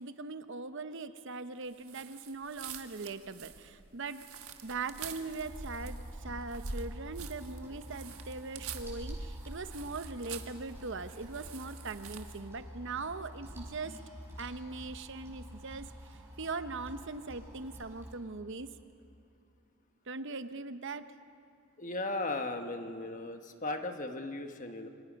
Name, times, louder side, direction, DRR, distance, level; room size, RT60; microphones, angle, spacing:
voice 1, 0.0-4.2 4.6-14.0 14.4-18.7 20.1-21.0, right 3 dB, 55° right, 11 dB, 0.8 m, -40 dB
sound 1, 1.8-12.5, right 4 dB, 80° right, 1.4 m, -45 dB
sound 2, 5.4-18.1, equal, 10° right, 5.7 m, -48 dB
voice 2, 21.8-24.9, left 2 dB, 35° left, 6 dB, 1.3 m, -37 dB
28.0 x 24.5 x 5.3 m, 2.5 s
head